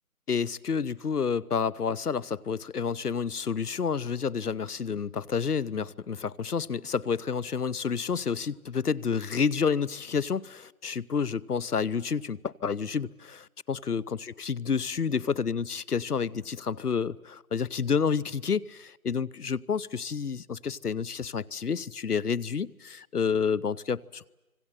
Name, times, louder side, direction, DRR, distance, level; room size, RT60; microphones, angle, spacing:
voice 1, 0.3-24.3, left 6 dB, 90° left, 22 dB, 1.0 m, -29 dB
29.5 x 25.5 x 7.7 m, 1.0 s
figure-of-eight pair, 180°, 44 cm